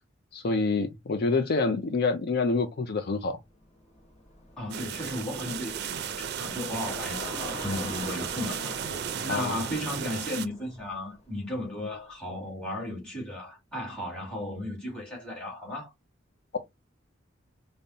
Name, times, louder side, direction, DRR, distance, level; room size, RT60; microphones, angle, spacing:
voice 1, 0.3-3.4 9.3-9.7, left 3 dB, 55° left, 0.5 m, -27 dB
Bicycle, 3.5-11.8, left 2 dB, 35° left, 1.1 m, -43 dB
voice 2, 4.6-8.7 9.2-15.9, left 1 dB, 5° left, 2.2 m, -35 dB
sound 1, 4.7-10.5, right 8 dB, 55° right, 0.4 m, -35 dB
5.2 x 2.1 x 2.7 m
head